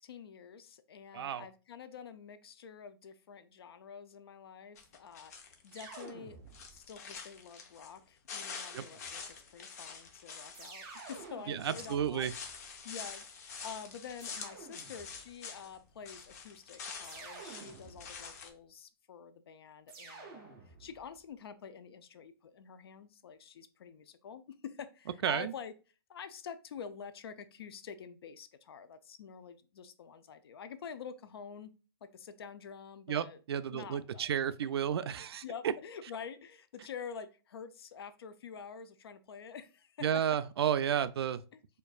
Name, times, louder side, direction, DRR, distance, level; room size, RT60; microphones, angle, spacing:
voice 1, 0.0-6.4 6.7-12.3 12.8-25.7 26.1-31.7 32.0-33.4 33.7-34.3 35.4-40.2 41.5-41.6, left 7 dB, 80° left, 0.5 m, -47 dB
voice 2, 1.1-1.5 8.7-8.8 11.5-12.3 25.2-25.5 33.1-35.7 40.0-41.4, right 9 dB, 85° right, 0.4 m, -32 dB
sound 1, 4.8-6.1 6.5-8.0 8.3-15.8 16.0-18.5, left 5 dB, 40° left, 0.6 m, -46 dB
sound 2, 5.7-6.9 8.4-9.3 10.5-12.9 14.2-15.3 17.0-18.4 19.9-21.1, right 4 dB, 20° right, 0.6 m, -51 dB
4.4 x 2.5 x 2.4 m
hypercardioid pair, 175°, 13 cm